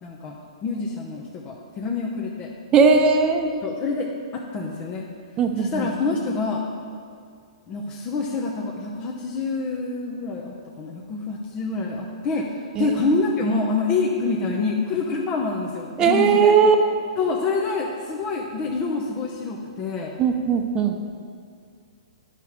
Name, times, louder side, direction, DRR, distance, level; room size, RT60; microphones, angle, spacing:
voice 1, 0.0-2.5 3.6-5.0 5.6-6.6 7.7-16.6 17.2-20.1, left 3 dB, 25° left, -2 dB, 0.8 m, -27 dB
voice 2, 2.7-3.5 5.4-5.9 12.8-13.1 16.0-16.8 20.2-21.0, right 5 dB, 25° right, 5 dB, 0.8 m, -18 dB
9.9 x 5.8 x 4.8 m, 2.2 s
hypercardioid pair, 140°, 3 cm